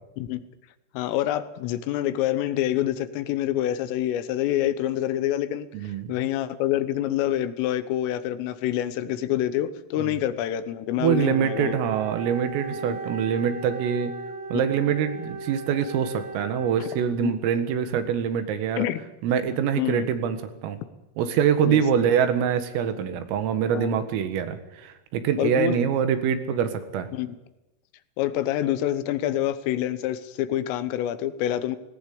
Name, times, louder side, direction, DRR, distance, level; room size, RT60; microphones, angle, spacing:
voice 1, 1.0-11.8 12.7-12.8 17.2-17.4 18.8-19.0 19.8-20.1 21.7-21.8 23.7-23.9 25.4-25.8 27.1-27.4 28.2-31.8, left 12 dB, 80° left, 13 dB, 3.6 m, -27 dB
voice 2, 5.7-6.2 10.0-10.2 11.0-14.2 14.5-18.9 19.2-20.8 21.2-27.1, right 8 dB, 85° right, 9 dB, 4.3 m, -25 dB
Wind instrument woodwind instrument, 11.0-17.4, right 4 dB, 50° right, 4.5 m, -37 dB
19.0 x 18.0 x 8.7 m, 0.98 s
omnidirectional pair, 5.9 m